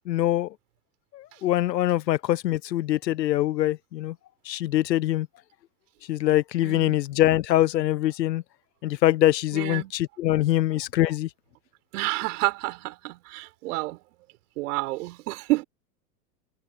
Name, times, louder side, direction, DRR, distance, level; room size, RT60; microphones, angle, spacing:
voice 1, 0.1-0.5 1.1-4.1 4.4-5.3 6.1-8.4 8.8-11.3, left 14 dB, 85° left, 1.1 m, -23 dB
voice 2, 6.6-7.0 9.5-9.9 11.9-14.0 14.6-15.6, right 21 dB, 65° right, 4.5 m, -29 dB
hypercardioid pair, 115°, 49 cm